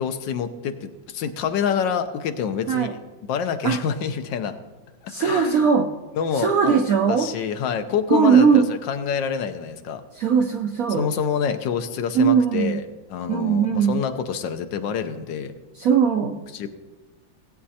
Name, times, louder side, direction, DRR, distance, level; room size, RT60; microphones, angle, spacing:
voice 1, 0.0-2.9 3.3-4.6 5.0-5.7 6.2-6.7 7.1-10.0 11.0-12.8 13.1-15.5 16.5-16.7, left 7 dB, 75° left, 9 dB, 1.3 m, -27 dB
voice 2, 5.1-5.9 6.3-7.3 8.1-8.7 10.1-11.1 12.1-12.8 13.3-14.0 15.7-16.4, right 6 dB, 75° right, 3 dB, 0.8 m, -19 dB
17.0 x 8.6 x 2.8 m, 1.2 s
omnidirectional pair, 2.1 m